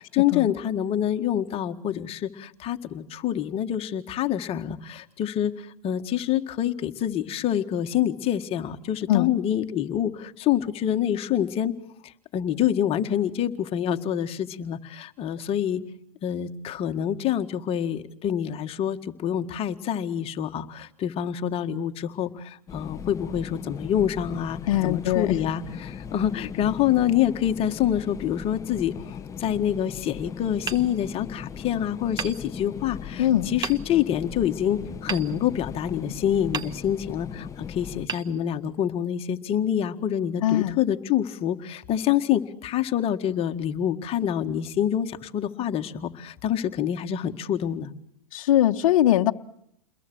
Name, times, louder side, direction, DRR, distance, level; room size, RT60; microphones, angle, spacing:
voice 1, 0.0-11.7 12.0-15.8 16.2-47.9, left 10 dB, 30° left, 7 dB, 1.9 m, -26 dB
sound 1, 22.7-38.1, left 7 dB, 15° left, 1.0 m, -38 dB
voice 2, 24.7-25.4 33.2-33.5 40.4-40.8 48.3-49.3, left 13 dB, 65° left, 7 dB, 1.2 m, -21 dB
Hammer, 30.7-31.6 32.2-33.1 33.6-34.2 35.1-36.0 36.5-37.3 38.0-39.0, right 7 dB, 20° right, 1.1 m, -36 dB
29.5 x 22.0 x 6.4 m, 0.72 s
hypercardioid pair, 120°, 18 cm